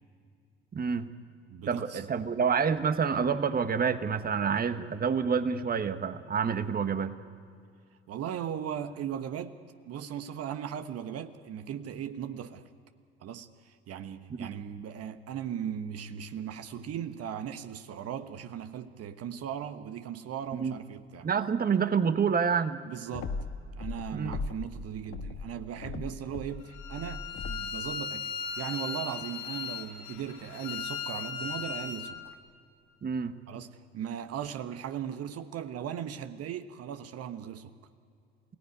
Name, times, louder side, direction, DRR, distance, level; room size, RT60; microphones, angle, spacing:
voice 1, 0.7-1.1 1.7-7.1 14.4-14.5 20.6-20.7 21.2-22.8 24.1-24.4 26.0-26.2 33.0-33.3, right 6 dB, 30° right, 1.3 m, -28 dB
voice 2, 1.5-2.1 8.1-12.6 13.2-21.3 22.9-23.3 23.8-32.4 33.5-37.7, right 9 dB, 50° right, 1.3 m, -38 dB
sound 1, 23.1-24.7 25.0-27.8, left 4 dB, 45° left, 1.7 m, -38 dB
Bowed string instrument, 26.7-32.1, left 6 dB, 75° left, 2.3 m, -37 dB
28.0 x 18.0 x 9.6 m
figure-of-eight pair, 55°, 31 cm